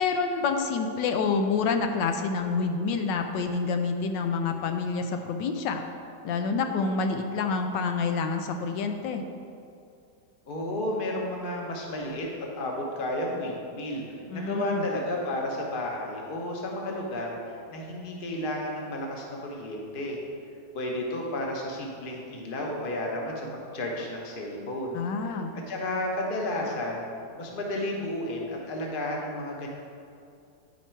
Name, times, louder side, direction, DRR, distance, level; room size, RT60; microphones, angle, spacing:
voice 1, 0.0-5.8 6.2-9.2 14.3-14.9 24.9-25.5, left 4 dB, 85° left, 5 dB, 1.3 m, -28 dB
voice 2, 10.4-20.2 20.7-27.0 27.4-29.7, left 1 dB, 35° left, -1 dB, 1.0 m, -32 dB
10.0 x 4.4 x 4.5 m, 2.5 s
omnidirectional pair, 1.9 m